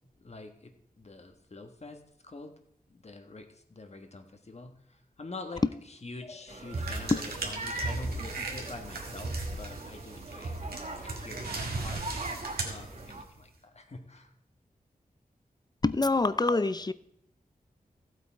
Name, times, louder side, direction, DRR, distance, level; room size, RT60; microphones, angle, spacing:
voice 1, 0.2-2.5 2.9-14.3, left 3 dB, 45° left, 6 dB, 1.4 m, -46 dB
sound 1, 6.5-13.2, right 2 dB, 50° right, 1.5 m, -42 dB
sound 2, 6.7-13.4, right 2 dB, 85° right, 2.3 m, -36 dB
voice 2, 15.8-16.9, left 3 dB, 25° left, 15 dB, 0.5 m, -25 dB
15.0 x 8.1 x 4.6 m, 0.72 s
wide cardioid pair, 80°, 15 cm